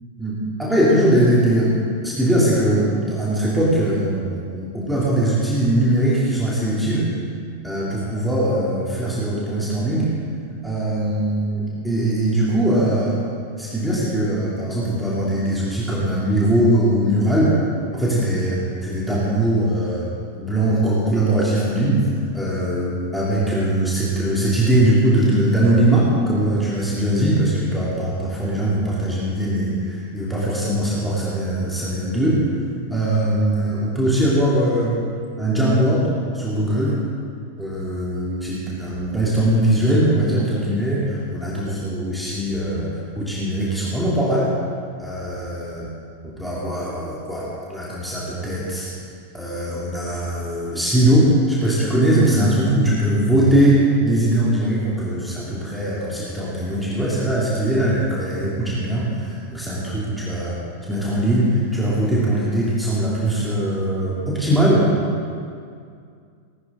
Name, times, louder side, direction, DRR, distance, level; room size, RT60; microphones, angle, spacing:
voice 1, 0.2-1.7 2.0-7.0 7.6-10.1 10.6-13.2 13.6-17.5 17.9-20.0 20.4-22.1 22.3-32.4 32.9-35.0 35.4-37.0 37.6-42.9 43.1-44.5 45.0-45.9 46.2-48.9 49.3-60.6 60.9-64.8, right 1 dB, ahead, -8 dB, 3.2 m, -21 dB
19.0 x 13.0 x 3.9 m, 2.3 s
figure-of-eight pair, 90°, 0 cm